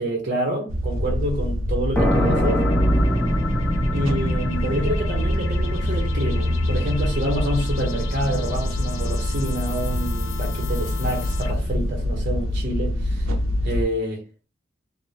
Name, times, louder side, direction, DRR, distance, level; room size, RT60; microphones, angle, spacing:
voice 1, 0.0-2.7 3.9-13.3 13.6-14.2, right 1 dB, 40° right, 0.7 m, -27 dB
sound 1, 0.7-13.8, equal, 85° right, 0.6 m, -24 dB
sound 2, 2.0-9.3, equal, 5° left, 0.6 m, -27 dB
sound 3, 2.1-11.8, left 7 dB, 80° left, 0.4 m, -36 dB
2.7 x 2.0 x 3.1 m
head